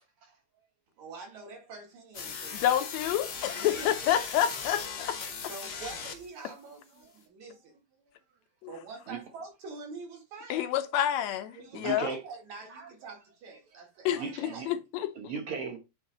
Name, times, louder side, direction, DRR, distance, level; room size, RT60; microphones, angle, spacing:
voice 1, 1.0-2.7 3.5-4.1 5.4-7.8 8.7-10.7 11.5-14.7, right 4 dB, 75° right, 3.3 m, -45 dB
sound 1, 2.1-6.5, left 6 dB, 60° left, 1.1 m, -38 dB
voice 2, 2.5-5.2 8.6-8.7 10.5-12.1 14.1-15.1, left 11 dB, 80° left, 1.8 m, -29 dB
voice 3, 11.7-12.2 12.7-13.1 14.1-14.7 15.1-15.8, right 5 dB, 60° right, 1.6 m, -37 dB
8.6 x 3.3 x 4.0 m
omnidirectional pair, 3.3 m